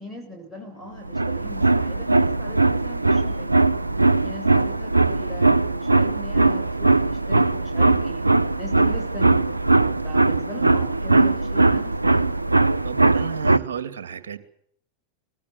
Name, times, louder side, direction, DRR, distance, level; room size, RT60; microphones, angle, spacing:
voice 1, 0.0-3.6 4.2-8.2 8.6-9.5 10.0-12.4, equal, ahead, -1 dB, 7.9 m, -39 dB
sound 1, 1.0-13.6, right 3 dB, 85° right, 0.8 m, -20 dB
voice 2, 12.8-14.4, right 8 dB, 60° right, 12 dB, 2.6 m, -33 dB
25.0 x 20.5 x 7.2 m, 0.67 s
figure-of-eight pair, 90°, 0 cm